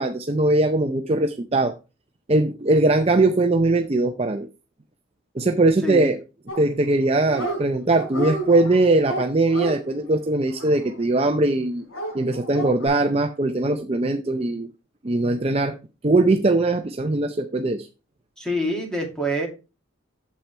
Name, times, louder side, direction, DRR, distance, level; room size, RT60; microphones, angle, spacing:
voice 1, 0.0-1.8 2.3-4.5 5.4-6.2 6.6-11.8 12.1-14.7 15.0-15.8 16.0-17.9, right 2 dB, 30° right, 0.5 m, -21 dB
Dog, 6.5-7.0 7.2-7.6 7.9-11.3 11.9-12.9, right 1 dB, 80° left, 4.2 m, -31 dB
voice 2, 18.4-19.5, right 1 dB, 5° left, 2.2 m, -26 dB
8.4 x 7.4 x 3.3 m
head